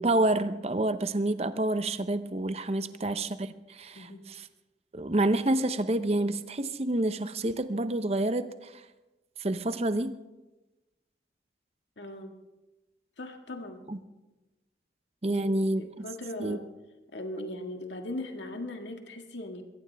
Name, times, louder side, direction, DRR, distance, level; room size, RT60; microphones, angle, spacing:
voice 1, 0.0-4.5 4.9-8.8 9.4-10.2 13.9-14.0 15.2-16.1 16.4-16.6, right 1 dB, 35° right, 12 dB, 0.7 m, -28 dB
voice 2, 12.0-12.3 13.2-13.8 15.3-16.6 17.1-19.6, left 1 dB, 85° left, 4 dB, 1.8 m, -39 dB
22.0 x 17.0 x 3.4 m, 1.1 s
head